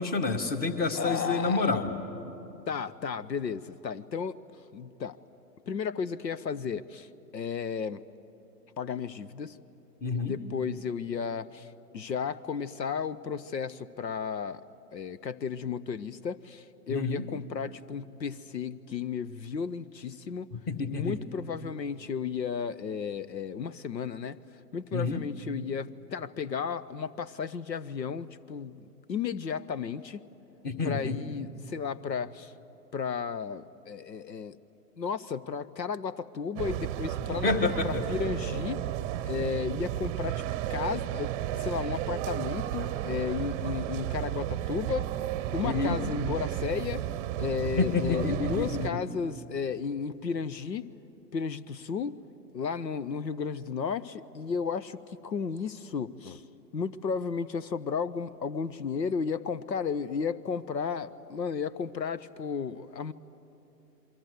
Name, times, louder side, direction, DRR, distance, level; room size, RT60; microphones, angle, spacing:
voice 1, 0.0-1.9 10.0-10.3 16.9-17.2 20.5-21.2 24.9-25.2 30.6-31.2 37.3-38.0 45.6-46.0 47.8-49.0, left 4 dB, 20° left, 9 dB, 1.5 m, -29 dB
voice 2, 0.9-1.7 2.7-4.4 4.7-5.2 5.7-8.0 8.8-9.6 10.2-14.6 14.9-20.5 20.9-24.4 24.7-30.2 30.8-32.5 32.9-34.6 35.0-37.5 37.8-38.8 39.3-40.4 40.7-45.1 45.5-47.1 47.4-50.9 51.3-52.2 52.5-56.4 56.7-63.1, left 6 dB, 85° left, 17 dB, 1.0 m, -33 dB
sound 1, 36.6-48.9, right 13 dB, 25° right, 0.8 m, -33 dB
28.0 x 23.5 x 8.0 m, 3.0 s
figure-of-eight pair, 120°, 50 cm